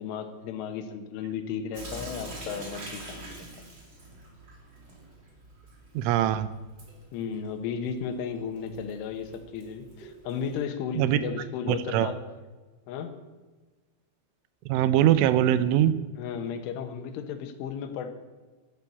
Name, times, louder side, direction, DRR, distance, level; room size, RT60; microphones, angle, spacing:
voice 1, 0.0-3.3 7.1-12.2 12.9-13.1 16.2-18.1, left 7 dB, 85° left, 8 dB, 3.9 m, -34 dB
Sink (filling or washing) / Drip, 1.7-10.6, right 1 dB, 25° right, 3.2 m, -45 dB
voice 2, 5.9-6.5 11.0-11.2 11.9-12.1 14.7-16.0, right 11 dB, 85° right, 14 dB, 3.3 m, -22 dB
12.5 x 12.0 x 8.6 m, 1.3 s
omnidirectional pair, 5.4 m